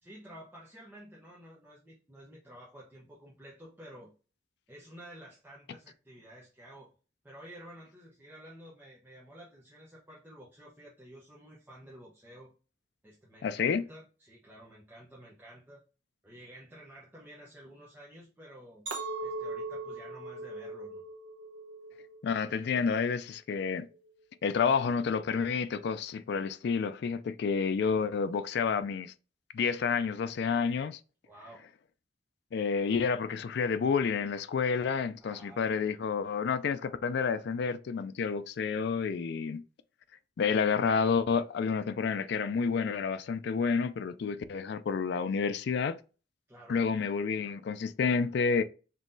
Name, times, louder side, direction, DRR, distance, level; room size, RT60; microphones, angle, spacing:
voice 1, 0.0-4.1 4.7-6.9 7.2-12.5 13.0-15.8 16.2-18.8 19.2-21.0 31.2-31.7 35.2-36.0 46.5-46.8, right 1 dB, 10° right, 0.9 m, -51 dB
voice 2, 13.4-13.8 22.2-23.9 24.4-29.1 29.5-31.0 32.5-39.6 40.4-46.0 46.7-48.6, left 5 dB, 60° left, 0.3 m, -29 dB
Chink clink, 18.9-23.2 23.7-24.1, right 2 dB, 80° right, 1.0 m, -40 dB
5.4 x 3.0 x 2.6 m
head